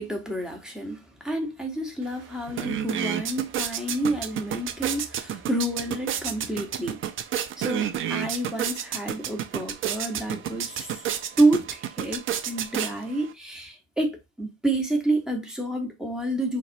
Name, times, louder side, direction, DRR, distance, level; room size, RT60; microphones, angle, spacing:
voice 1, 0.0-7.0 7.6-11.0 11.4-16.6, right 1 dB, ahead, 1.0 m, -28 dB
sound 1, 2.0-2.1 2.4-13.3, right 10 dB, 35° right, 0.5 m, -31 dB
4.0 x 2.1 x 2.6 m
supercardioid pair, 95°, 38 cm